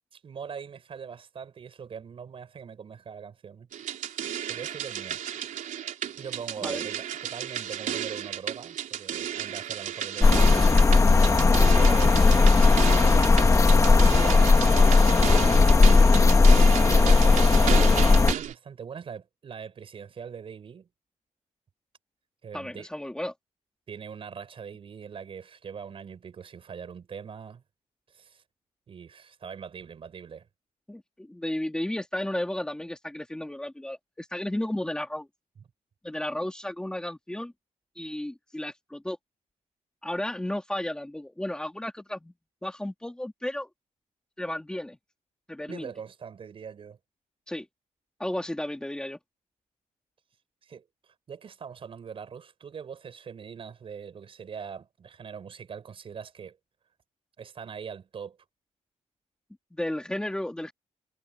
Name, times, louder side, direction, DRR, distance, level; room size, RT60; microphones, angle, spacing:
voice 1, 0.1-3.7 4.5-5.2 6.2-10.8 11.6-12.2 13.1-13.4 13.7-15.5 16.2-20.9 22.4-22.9 23.9-27.6 28.1-28.4 28.9-30.5 45.6-47.0 50.6-50.8 51.3-56.6 57.4-58.4, right 6 dB, 45° right, 5.9 m, -42 dB
sound 1, 3.7-18.5, right 10 dB, 85° right, 3.4 m, -33 dB
sound 2, 10.2-18.3, left 3 dB, 25° left, 1.3 m, -17 dB
voice 2, 22.5-23.3 30.9-35.3 36.0-37.5 38.0-39.2 40.0-42.3 42.6-43.7 44.4-45.0 45.5-45.9 47.5-47.7 48.2-49.2 59.7-60.7, left 1 dB, 5° left, 2.4 m, -33 dB
wide cardioid pair, 165°, 13 cm